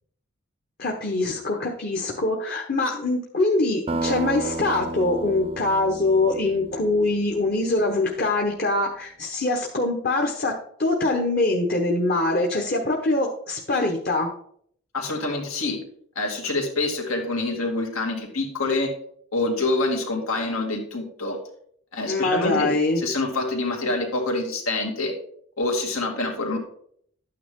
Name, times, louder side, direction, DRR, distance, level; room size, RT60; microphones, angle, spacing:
voice 1, 0.8-14.3 22.0-23.0, left 2 dB, 45° left, 2 dB, 1.1 m, -23 dB
sound 1, 3.9-8.2, right 3 dB, 25° right, 0.6 m, -33 dB
voice 2, 14.9-15.8 16.1-18.9 19.3-21.4 21.9-25.1 25.6-26.6, left 2 dB, 90° left, 1 dB, 2.7 m, -26 dB
12.0 x 9.3 x 3.7 m, 0.65 s
head